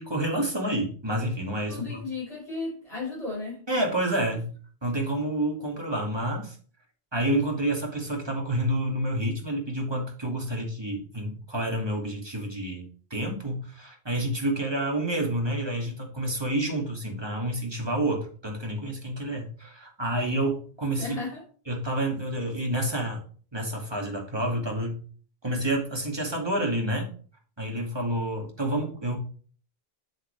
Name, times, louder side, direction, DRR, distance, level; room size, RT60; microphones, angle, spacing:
voice 1, 0.0-2.0 3.7-4.5 4.8-6.6 7.1-21.2 21.7-23.2 23.5-25.0 25.4-27.1 27.6-29.2, right 1 dB, 25° right, 1 dB, 2.3 m, -29 dB
voice 2, 1.7-3.6 21.0-21.4, left 3 dB, 35° left, -4 dB, 5.2 m, -34 dB
7.9 x 7.7 x 3.3 m, 0.42 s
omnidirectional pair, 1.0 m